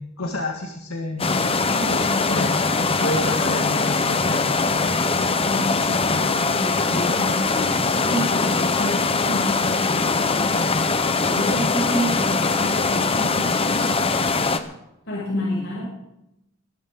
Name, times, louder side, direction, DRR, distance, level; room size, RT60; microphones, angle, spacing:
voice 1, 0.0-1.4 2.3-2.5 3.0-4.6, left 2 dB, 75° left, 3 dB, 1.8 m, -29 dB
sound 1, 1.2-14.6, left 4 dB, 25° left, 0.9 m, -22 dB
voice 2, 1.7-2.4 2.7-2.8 5.4-6.1 6.4-10.7 11.0-13.9 15.0-15.8, equal, 60° left, -5 dB, 6.3 m, -29 dB
22.0 x 13.0 x 3.8 m, 0.85 s
head